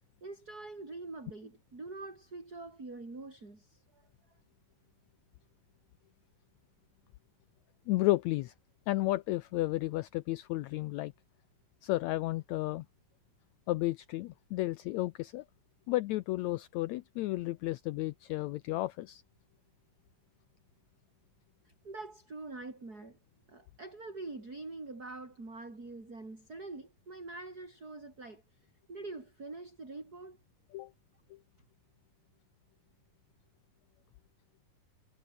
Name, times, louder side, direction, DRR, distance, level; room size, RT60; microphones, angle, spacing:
voice 1, 0.2-4.1 21.7-23.2 23.5-28.4 28.9-30.4, right 3 dB, 25° right, 5.8 m, -45 dB
voice 2, 7.9-8.5 8.9-11.1 11.8-12.9 13.7-15.4 15.9-19.2 30.7-30.9 31.3-31.4, left 17 dB, 90° left, 1.6 m, -32 dB
omnidirectional pair, 3.8 m